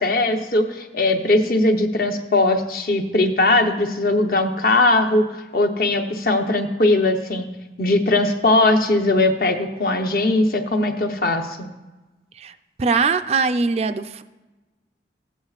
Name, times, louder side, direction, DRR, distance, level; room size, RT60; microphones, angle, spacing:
voice 1, 0.0-7.5 7.8-11.6, left 2 dB, 55° left, 4 dB, 0.8 m, -19 dB
voice 2, 12.4-14.2, right 4 dB, 35° right, 11 dB, 0.3 m, -22 dB
15.0 x 8.2 x 2.4 m, 1.1 s
head